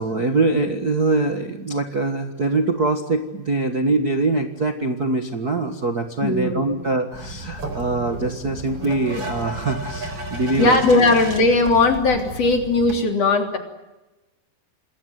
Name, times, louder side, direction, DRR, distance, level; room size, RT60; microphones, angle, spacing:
voice 1, 0.0-11.1, right 3 dB, 75° right, 5 dB, 0.8 m, -23 dB
voice 2, 6.2-6.8 10.6-13.6, left 3 dB, 40° left, 5 dB, 4.0 m, -18 dB
sound 1, 7.1-13.0, right 1 dB, 30° right, 4.6 m, -33 dB
28.0 x 20.5 x 9.2 m, 1.1 s
omnidirectional pair, 4.7 m